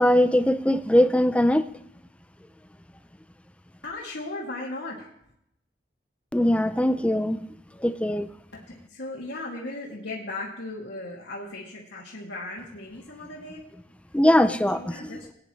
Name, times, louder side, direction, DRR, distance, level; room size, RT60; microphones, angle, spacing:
voice 1, 0.0-1.6 6.3-7.4 7.8-8.3 14.1-15.2, left 1 dB, 5° left, 11 dB, 0.5 m, -21 dB
voice 2, 3.8-5.1 8.7-13.6 14.5-15.3, left 2 dB, 80° left, -5 dB, 2.3 m, -37 dB
19.5 x 9.7 x 3.1 m, 0.77 s
head